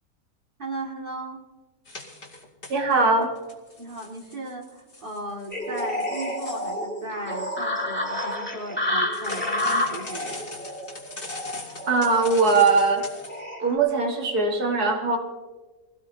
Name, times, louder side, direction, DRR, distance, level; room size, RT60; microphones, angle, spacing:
voice 1, 0.6-1.4 3.8-10.4, right 2 dB, 35° right, 0 dB, 2.4 m, -36 dB
sound 1, 1.9-3.0 3.4-6.7 9.1-13.4, left 2 dB, 35° left, 2.5 m, -41 dB
voice 2, 2.7-3.3 11.9-13.1 13.6-15.2, right 3 dB, 85° right, 1 dB, 2.3 m, -21 dB
sound 2, 5.5-13.7, left 1 dB, 5° left, 2.9 m, -30 dB
23.5 x 17.0 x 2.8 m, 1.3 s
omnidirectional pair, 1.6 m